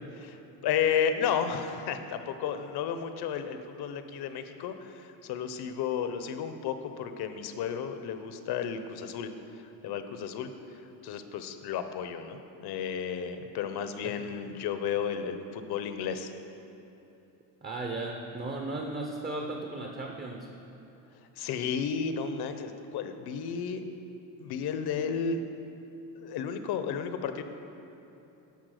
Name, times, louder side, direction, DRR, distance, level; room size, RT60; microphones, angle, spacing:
voice 1, 0.2-9.3 9.6-10.5 11.0-16.3 21.4-23.8 24.4-25.4 26.2-27.4, left 7 dB, 65° left, 9 dB, 0.8 m, -33 dB
voice 2, 17.6-20.5, right 2 dB, 25° right, 1 dB, 0.8 m, -36 dB
10.5 x 5.9 x 6.5 m, 3.0 s
cardioid pair, 115°, 42 cm